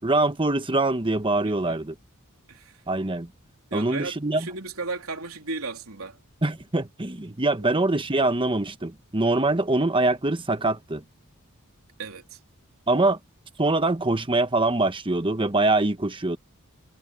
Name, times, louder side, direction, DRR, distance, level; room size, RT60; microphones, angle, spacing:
voice 1, 0.0-1.9 2.9-3.3 3.7-4.5 6.4-11.0 12.9-13.2 13.6-16.4, right 2 dB, 25° right, 1.2 m, -24 dB
voice 2, 1.4-1.8 2.5-2.8 3.7-6.2 7.5-7.8 12.0-12.4, right 3 dB, 80° right, 3.6 m, -35 dB
head